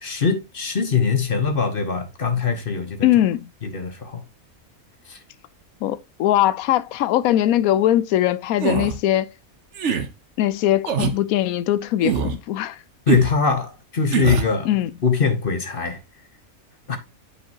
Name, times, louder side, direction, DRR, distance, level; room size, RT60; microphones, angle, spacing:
voice 1, 0.0-3.1 3.6-4.2 5.1-5.2 13.1-14.7 15.0-16.0 16.9-17.0, left 5 dB, 40° left, 1.2 m, -22 dB
voice 2, 3.0-3.5 5.8-9.3 10.4-12.8 14.6-14.9, left 13 dB, 80° left, 1.0 m, -20 dB
sound 1, 8.6-9.0 9.7-10.1 10.9-11.2 12.0-12.4 13.1-13.3 14.1-14.5, right 7 dB, 60° right, 1.1 m, -23 dB
8.4 x 5.0 x 2.9 m
omnidirectional pair, 1.5 m